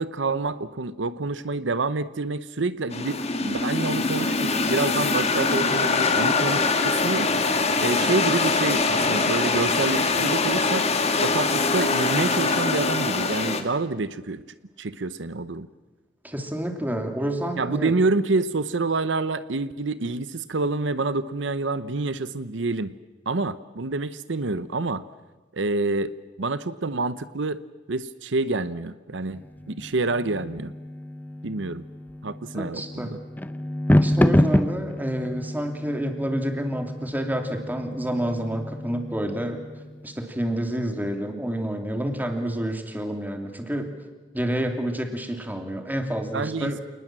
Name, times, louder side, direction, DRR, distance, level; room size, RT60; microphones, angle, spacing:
voice 1, 0.0-7.5 7.8-10.9 11.2-14.4 14.8-15.7 17.6-22.9 23.3-25.0 25.5-27.6 27.9-30.7 31.4-31.8 32.2-32.8 33.1-33.2 46.3-46.8, right 3 dB, 75° right, 14 dB, 0.8 m, -27 dB
sound 1, 2.9-13.6, left 3 dB, 35° left, 2.0 m, -23 dB
voice 2, 16.2-17.9 32.5-33.2 34.0-39.6 40.0-43.9 44.3-46.8, right 1 dB, 10° right, 5 dB, 2.8 m, -29 dB
sound 2, 29.3-40.1, left 1 dB, 10° left, 0.8 m, -27 dB
28.5 x 20.0 x 7.6 m, 1.2 s
head